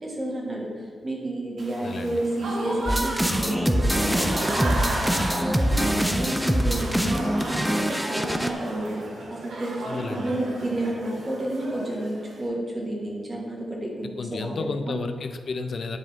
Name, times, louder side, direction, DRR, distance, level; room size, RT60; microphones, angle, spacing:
voice 1, 0.0-5.1 5.6-9.0 9.3-14.6 14.9-15.0, right 1 dB, 35° right, -2 dB, 1.6 m, -30 dB
Applause / Crowd, 1.6-12.5, right 1 dB, 85° right, 1.2 m, -34 dB
voice 2, 1.8-2.2 9.9-10.3 14.0-16.0, left 4 dB, 60° left, 8 dB, 0.5 m, -32 dB
sound 1, 2.9-8.5, equal, 5° right, 0.4 m, -24 dB
10.0 x 3.6 x 3.5 m, 2.2 s
cardioid pair, 95°, 0 cm